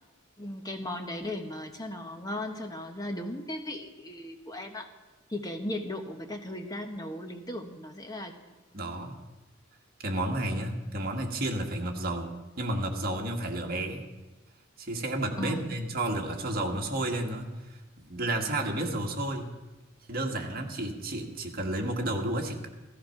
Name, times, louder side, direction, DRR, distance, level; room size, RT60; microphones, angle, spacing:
voice 1, 0.4-4.9 5.3-8.6 15.4-15.7, left 1 dB, 20° left, 5 dB, 1.1 m, -37 dB
voice 2, 8.7-9.2 10.0-14.1 14.8-19.5 20.1-22.7, right 1 dB, 45° right, 2 dB, 1.8 m, -32 dB
16.0 x 14.0 x 5.8 m, 1.2 s
head